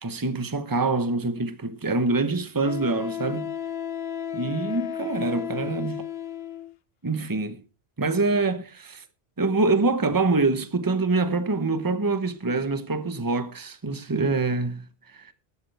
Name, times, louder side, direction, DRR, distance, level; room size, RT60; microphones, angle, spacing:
voice 1, 0.0-3.5 4.3-6.0 7.0-7.6 8.0-9.0 9.4-14.9 15.1-15.3, right 3 dB, 20° right, 1.0 m, -25 dB
Wind instrument woodwind instrument, 1.4-1.5 2.7-6.7, left 9 dB, 70° left, 1.0 m, -33 dB
14.0 x 12.0 x 3.5 m
omnidirectional pair, 1.1 m